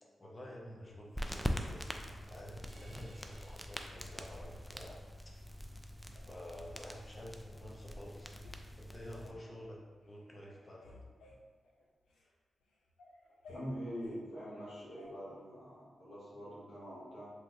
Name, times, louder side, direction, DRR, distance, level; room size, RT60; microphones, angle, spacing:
voice 1, 0.0-5.4 6.1-8.4 8.8-10.9, equal, 30° left, -2 dB, 0.7 m, -50 dB
sound 1, 0.8-1.5 2.0-2.9 3.4-3.6 3.9-4.9 5.4-5.5 6.0-7.1 7.7-7.8 8.1-8.6 8.9-9.5 10.0-10.2 10.5-12.3 12.7-14.2 15.0-15.1, left 1 dB, 85° left, 0.4 m, -57 dB
sound 2, 1.1-9.3, equal, 5° left, 0.3 m, -43 dB
sound 3, 2.7-5.0, right 1 dB, 40° right, 0.7 m, -62 dB
voice 2, 13.5-17.3, equal, 60° left, -11 dB, 1.1 m, -44 dB
3.2 x 2.0 x 2.9 m, 1.5 s
supercardioid pair, 45°, 0 cm